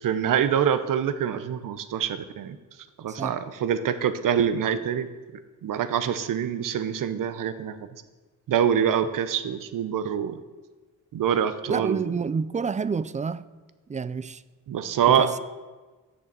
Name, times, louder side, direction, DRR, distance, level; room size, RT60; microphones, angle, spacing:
voice 1, 0.0-2.6 3.0-5.1 5.6-7.8 8.5-10.4 11.1-12.2 14.7-15.3, right 8 dB, 80° right, 0.8 m, -25 dB
voice 2, 11.7-13.5 13.9-14.4 15.2-15.4, right 5 dB, 25° right, 0.4 m, -28 dB
7.7 x 6.8 x 6.8 m
cardioid pair, 75°, 32 cm